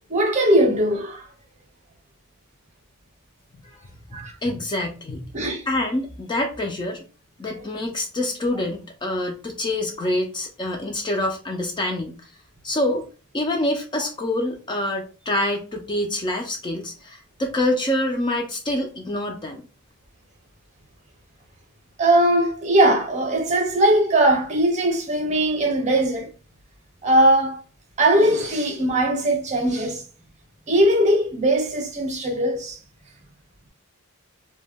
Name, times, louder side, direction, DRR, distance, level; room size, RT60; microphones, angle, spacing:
voice 1, 0.1-1.2 4.1-4.3 5.3-5.6 22.0-26.3 27.0-27.6 28.0-30.0 30.7-32.8, right 1 dB, 35° right, 0.7 m, -20 dB
voice 2, 4.1-5.2 5.7-7.0 7.4-12.1 12.6-13.1 13.3-19.6, left 1 dB, 20° left, 0.3 m, -26 dB
2.1 x 2.1 x 3.3 m
head